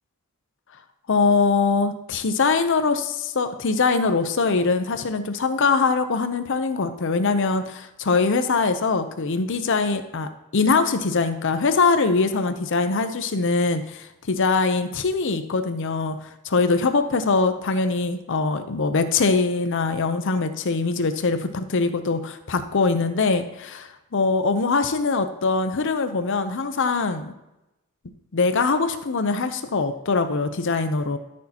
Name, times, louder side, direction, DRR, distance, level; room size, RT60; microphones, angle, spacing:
voice 1, 1.1-27.3 28.3-31.2, left 4 dB, 60° left, 9 dB, 0.7 m, -22 dB
13.5 x 6.4 x 2.9 m, 0.92 s
head